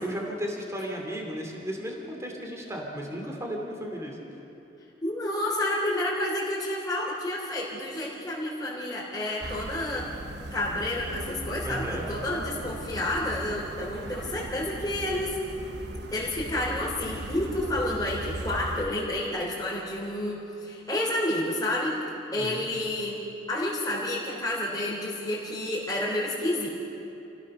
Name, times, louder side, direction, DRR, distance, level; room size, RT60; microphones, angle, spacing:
voice 1, 0.0-4.2 11.6-12.1 22.4-22.6, equal, 15° right, 0 dB, 2.9 m, -34 dB
voice 2, 5.0-10.1 10.5-15.4 16.1-22.0 22.3-23.2 23.5-26.7, left 1 dB, 20° left, -8 dB, 3.6 m, -30 dB
sound 1, 9.4-18.8, right 1 dB, 70° right, 1.2 m, -38 dB
29.5 x 16.0 x 6.8 m, 2.9 s
head